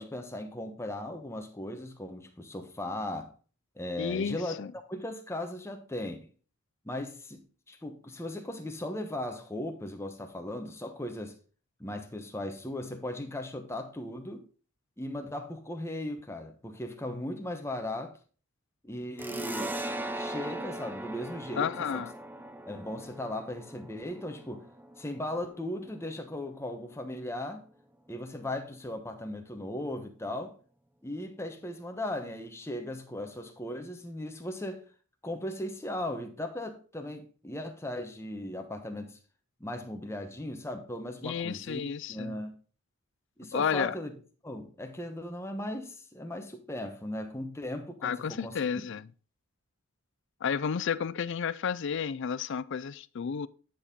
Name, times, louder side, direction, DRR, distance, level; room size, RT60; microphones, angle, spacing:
voice 1, 0.0-3.3 3.8-4.5 4.9-6.2 6.8-7.4 7.7-11.4 11.8-14.4 15.0-18.2 18.8-19.8 20.1-22.0 22.7-24.6 25.0-27.6 28.1-30.5 31.0-34.8 35.2-39.2 39.6-42.5 43.4-44.1 44.4-48.6, left 1 dB, 10° left, 1.0 m, -37 dB
voice 2, 4.0-4.7 21.6-22.1 41.2-42.4 43.5-43.9 48.0-49.1 50.4-53.5, left 7 dB, 55° left, 0.4 m, -31 dB
sound 1, 19.2-26.4, right 1 dB, 10° right, 0.5 m, -39 dB
9.7 x 4.3 x 5.1 m
head